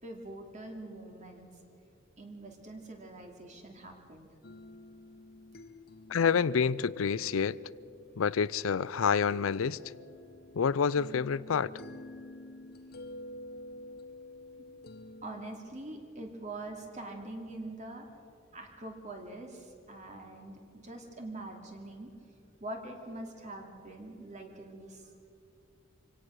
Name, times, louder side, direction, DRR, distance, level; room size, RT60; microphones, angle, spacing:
voice 1, 0.0-1.5 2.2-4.3 14.6-14.7 15.2-18.1 18.5-22.1 22.6-25.2, right 2 dB, 35° right, 2.7 m, -44 dB
sound 1, 4.4-15.5, left 1 dB, 50° left, 0.9 m, -49 dB
voice 2, 6.1-7.6 8.2-9.8 10.5-11.7, left 6 dB, 90° left, 0.5 m, -28 dB
25.5 x 17.0 x 6.4 m
head